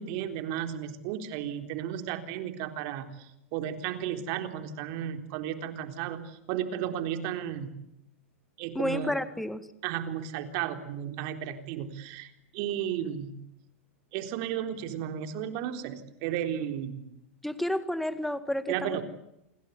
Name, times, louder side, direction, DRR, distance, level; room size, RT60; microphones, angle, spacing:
voice 1, 0.0-7.7 8.6-9.2 9.8-13.4 14.1-17.0 18.7-19.0, right 10 dB, 50° right, 8 dB, 3.9 m, -34 dB
voice 2, 8.7-9.6 17.4-19.0, left 1 dB, ahead, 12 dB, 1.9 m, -30 dB
28.0 x 22.5 x 8.3 m, 0.80 s
hypercardioid pair, 120°, 7 cm